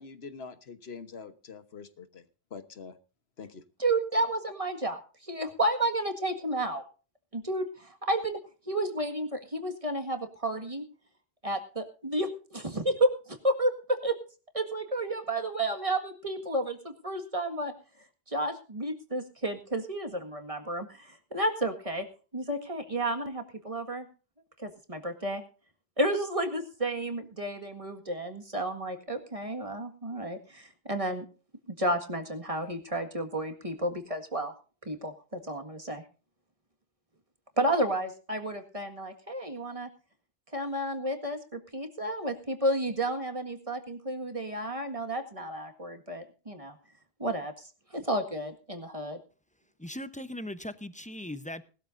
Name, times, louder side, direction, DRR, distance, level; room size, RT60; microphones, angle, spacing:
voice 1, 0.0-2.2 2.5-3.0 3.4-3.6, left 5 dB, 65° left, 1.5 m, -44 dB
voice 2, 3.8-6.8 7.3-8.4 8.7-10.8 11.4-13.1 13.4-14.2 14.5-17.7 18.3-22.1 22.3-24.1 24.6-25.4 26.0-31.3 31.7-34.5 34.9-36.0 37.6-39.9 40.5-46.8 47.2-47.5 47.9-49.2, right 1 dB, 30° right, 1.9 m, -31 dB
voice 3, 49.8-51.6, left 1 dB, 10° left, 0.7 m, -39 dB
19.5 x 13.0 x 2.6 m
omnidirectional pair, 1.1 m